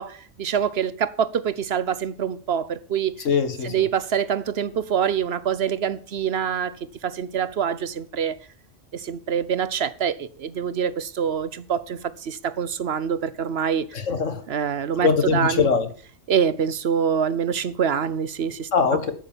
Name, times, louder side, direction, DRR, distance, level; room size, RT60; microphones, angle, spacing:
voice 1, 0.0-3.1 3.6-6.7 7.0-8.3 8.9-13.9 14.5-15.7 16.3-18.7, right 8 dB, 60° right, 1.0 m, -25 dB
voice 2, 3.2-3.9 13.9-14.4 15.0-15.9 18.7-19.1, left 5 dB, 90° left, 1.9 m, -22 dB
12.0 x 8.4 x 7.2 m
omnidirectional pair, 1.3 m